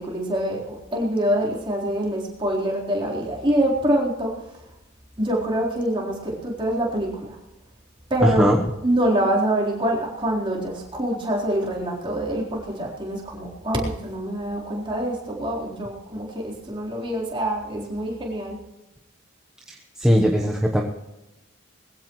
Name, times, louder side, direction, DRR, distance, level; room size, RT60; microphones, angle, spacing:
voice 1, 0.0-4.3 5.2-7.4 8.1-8.5 8.8-18.6, right 1 dB, 25° right, -4 dB, 4.0 m, -25 dB
voice 2, 8.2-8.6 19.7-20.8, equal, 5° right, -1 dB, 1.0 m, -19 dB
21.0 x 15.5 x 3.1 m, 0.97 s
head